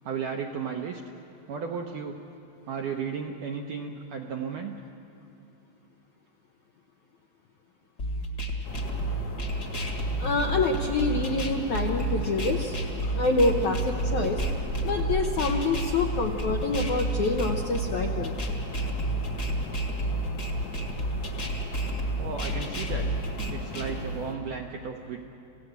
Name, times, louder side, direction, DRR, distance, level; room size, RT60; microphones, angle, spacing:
voice 1, 0.0-1.0 1.5-2.2 2.7-4.8 22.2-23.1 23.5-25.2, right 6 dB, 75° right, 2 dB, 1.9 m, -34 dB
sound 1, 8.0-24.0, right 2 dB, 35° left, 1.6 m, -30 dB
sound 2, 8.6-24.3, left 2 dB, 55° left, 1.3 m, -38 dB
voice 2, 10.2-12.8 13.2-14.4 14.8-18.3, left 3 dB, 75° left, 2 dB, 1.8 m, -26 dB
28.5 x 17.0 x 8.1 m, 2.8 s
omnidirectional pair, 4.8 m